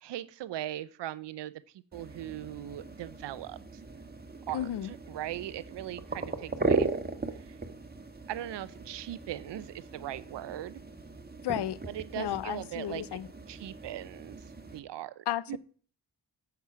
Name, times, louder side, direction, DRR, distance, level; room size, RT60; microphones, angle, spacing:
voice 1, 0.0-3.8 4.5-6.9 7.3-7.6 8.3-10.8 11.9-13.0 13.5-14.4 14.7-15.6, right 13 dB, 85° right, 0.6 m, -39 dB
sound 1, 1.9-14.8, right 3 dB, 25° right, 1.5 m, -37 dB
voice 2, 4.5-4.9 11.4-11.8 12.1-13.3 15.3-15.6, left 12 dB, 75° left, 0.6 m, -33 dB
8.9 x 6.1 x 6.1 m
supercardioid pair, 40°, 41 cm